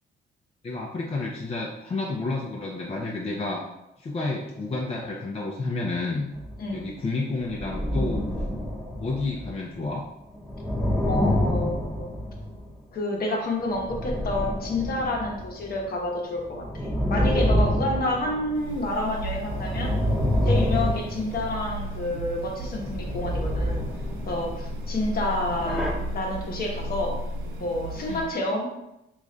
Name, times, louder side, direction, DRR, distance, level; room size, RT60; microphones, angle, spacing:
voice 1, 0.6-3.6 4.0-6.3 6.7-8.2 9.0-10.0 28.1-28.2, left 3 dB, 30° left, -2 dB, 0.5 m, -30 dB
sound 1, 6.3-6.7 7.4-9.8 10.3-12.7 13.7-15.9 16.4-18.8 19.2-21.9 22.6-24.9 25.5-25.9, equal, ahead, 0.8 m, -27 dB
voice 2, 11.1-12.1 12.9-20.0 20.4-23.9 24.3-27.2 27.6-28.7, left 1 dB, 50° left, 0 dB, 0.9 m, -29 dB
sound 2, 18.5-28.4, right 1 dB, 85° right, 0.5 m, -35 dB
3.1 x 2.4 x 3.8 m, 0.88 s
cardioid pair, 90°, 20 cm